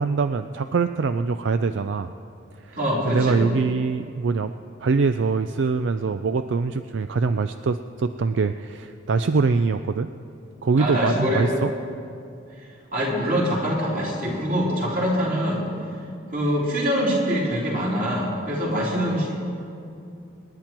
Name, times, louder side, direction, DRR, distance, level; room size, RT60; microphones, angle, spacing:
voice 1, 0.0-2.1 2.6-2.8 3.1-4.5 4.8-10.1 10.6-11.7, right 4 dB, 75° right, 10 dB, 0.4 m, -23 dB
voice 2, 2.7-3.4 10.8-11.5 12.9-15.7 16.3-19.4, equal, 45° right, -4 dB, 3.6 m, -24 dB
26.0 x 10.5 x 4.5 m, 2.6 s
head